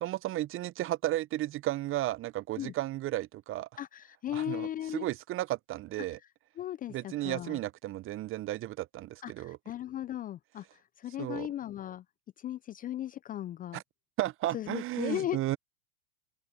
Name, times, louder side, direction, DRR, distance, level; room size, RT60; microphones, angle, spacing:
voice 1, 0.0-3.7 4.3-6.2 6.9-9.6 11.2-11.5 13.7-13.8 14.2-15.6, right 15 dB, 30° right, 1.0 m, -34 dB
voice 2, 3.8-5.1 6.6-7.6 9.2-12.0 12.4-13.8 14.5-15.4, left 12 dB, 20° left, 0.6 m, -37 dB
hypercardioid pair, 100°, 42 cm